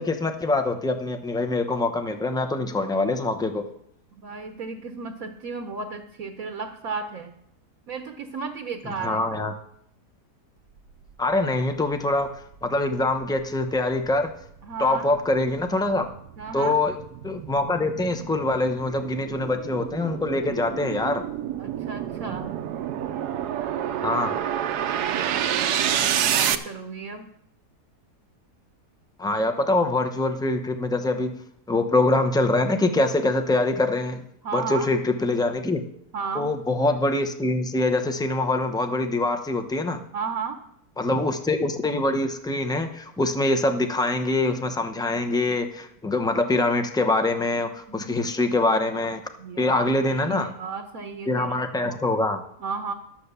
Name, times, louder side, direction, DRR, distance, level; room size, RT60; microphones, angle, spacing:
voice 1, 0.0-3.6 8.8-9.5 11.2-12.3 12.6-14.3 14.8-16.1 16.5-16.9 17.2-21.2 24.0-24.4 29.2-31.3 31.7-34.2 34.5-35.8 36.3-40.0 41.0-49.2 49.6-50.5 51.3-52.4, left 2 dB, 5° left, 6 dB, 0.4 m, -24 dB
voice 2, 4.2-7.3 7.9-9.2 14.6-15.1 16.4-16.8 21.6-22.6 24.9-27.3 34.4-34.9 36.1-36.5 40.1-40.6 47.9-48.1 49.4-52.0 52.6-52.9, right 5 dB, 60° right, 5 dB, 1.2 m, -34 dB
sound 1, 12.4-26.6, right 10 dB, 80° right, 1.2 m, -29 dB
12.0 x 7.0 x 6.8 m, 0.71 s
omnidirectional pair, 1.7 m